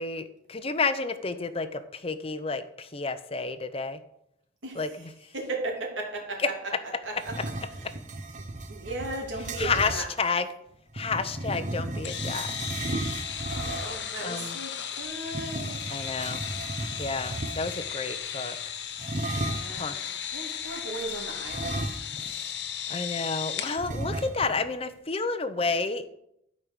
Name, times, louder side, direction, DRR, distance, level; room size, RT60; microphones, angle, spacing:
voice 1, 0.0-4.0 4.8-4.9 9.6-10.5 10.9-12.5 14.2-14.6 15.9-16.4 17.0-18.6 19.7-20.0 22.2-22.5 22.9-26.1, left 4 dB, 30° left, 11 dB, 0.7 m, -30 dB
voice 2, 4.6-5.1 5.3-7.4 7.7-10.1 13.4-15.8 19.5-22.0, right 2 dB, 85° right, -1 dB, 2.9 m, -37 dB
sound 1, 7.2-10.1 10.9-14.1 15.3-17.9 19.0-19.8 21.5-22.4 22.7-22.8 23.8-24.6, right 2 dB, 40° right, 0.8 m, -35 dB
sound 2, 12.0-23.8, left 8 dB, 65° left, 0.9 m, -35 dB
12.5 x 5.4 x 6.3 m, 0.77 s
head